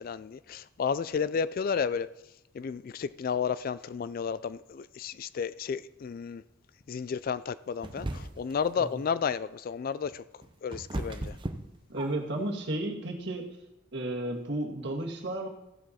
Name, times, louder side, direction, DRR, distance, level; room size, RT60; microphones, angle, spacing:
voice 1, 0.0-2.1 2.5-6.4 6.9-10.2 10.6-11.4, left 6 dB, 45° left, 0.3 m, -32 dB
sound 1, 7.8-8.6 10.1-12.4, right 1 dB, 25° right, 0.7 m, -36 dB
voice 2, 11.9-13.5 13.9-15.5, right 1 dB, 60° right, 1.7 m, -33 dB
15.0 x 7.7 x 4.2 m
head